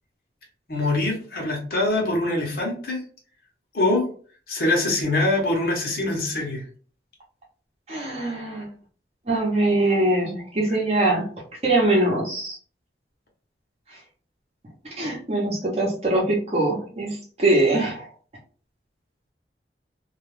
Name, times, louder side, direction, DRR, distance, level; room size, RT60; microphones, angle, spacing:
voice 1, 0.7-3.0 3.7-4.1 4.5-6.6, left 2 dB, 55° left, 0 dB, 0.9 m, -23 dB
voice 2, 7.9-8.7 9.3-11.3 11.6-12.6 15.0-18.0, right 2 dB, 35° right, -2 dB, 0.8 m, -22 dB
2.3 x 2.3 x 3.2 m, 0.43 s
head